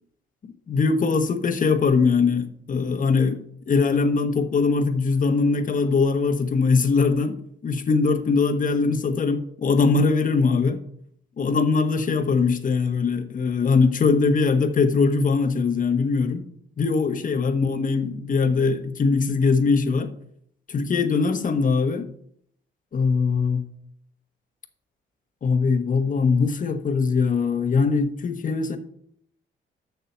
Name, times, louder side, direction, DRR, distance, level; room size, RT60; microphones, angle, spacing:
voice 1, 0.4-10.8 11.4-16.4 16.8-20.1 20.7-22.1 22.9-23.6 25.4-28.8, left 4 dB, 40° left, 1.3 m, -21 dB
7.0 x 6.7 x 7.9 m
cardioid pair, 90°, 20 cm